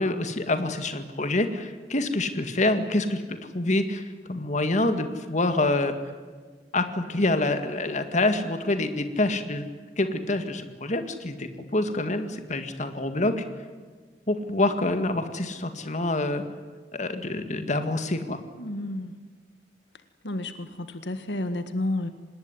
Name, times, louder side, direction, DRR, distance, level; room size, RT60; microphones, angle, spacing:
voice 1, 0.0-3.2 3.5-6.0 6.7-9.7 10.0-13.4 14.3-16.4 16.9-18.4, left 2 dB, 45° left, 8 dB, 2.0 m, -26 dB
voice 2, 18.6-19.1 20.2-22.1, left 1 dB, 85° left, 10 dB, 1.8 m, -31 dB
26.0 x 20.0 x 9.9 m, 1.5 s
head